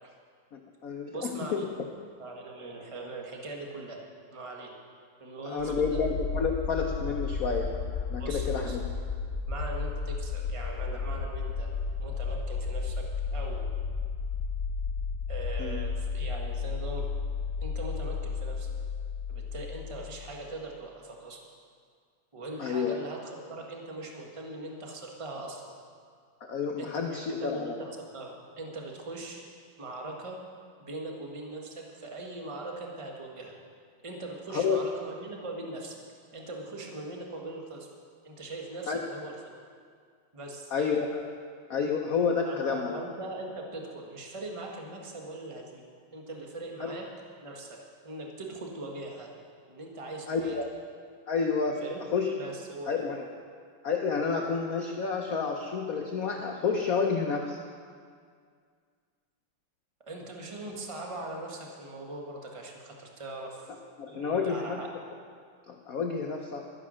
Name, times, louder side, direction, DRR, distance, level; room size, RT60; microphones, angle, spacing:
voice 1, 0.5-1.7 5.4-8.8 15.6-15.8 22.6-23.0 26.4-27.8 34.5-34.9 38.9-39.1 40.7-41.3 41.7-43.0 46.8-47.0 50.3-50.7 51.3-51.9 52.1-52.4 52.9-53.3 53.8-57.6 63.7-64.8 65.7-66.7, left 5 dB, 65° left, 2 dB, 0.8 m, -30 dB
voice 2, 1.1-1.7 2.2-4.0 4.3-4.7 5.2-6.0 8.1-8.8 9.5-13.7 15.3-17.1 17.6-18.7 19.3-21.4 22.3-25.7 26.8-29.5 29.8-30.4 30.8-33.6 34.0-36.0 36.3-37.9 38.2-39.3 40.3-40.7 42.4-45.8 46.1-47.1 47.4-49.3 49.7-50.6 51.8-52.0 52.4-53.0 60.1-63.7 64.1-64.9, right 2 dB, 20° right, 0 dB, 1.1 m, -40 dB
sound 1, 5.6-20.4, left 5 dB, 30° left, 1.6 m, -33 dB
12.0 x 10.0 x 6.3 m, 2.1 s
omnidirectional pair, 2.4 m